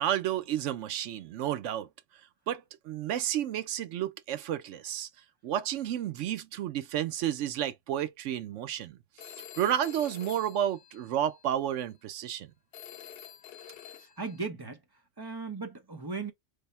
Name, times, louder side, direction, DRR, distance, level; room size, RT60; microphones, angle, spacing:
voice 1, 0.0-1.9 2.5-5.1 5.4-9.0 9.6-12.5, right 11 dB, 75° right, 0.9 m, -31 dB
Telephone, 9.2-11.5 12.7-14.5, left 10 dB, 60° left, 0.7 m, -48 dB
voice 2, 14.2-14.8 15.2-16.3, right 4 dB, 30° right, 0.5 m, -36 dB
3.4 x 2.0 x 4.1 m
omnidirectional pair, 1.3 m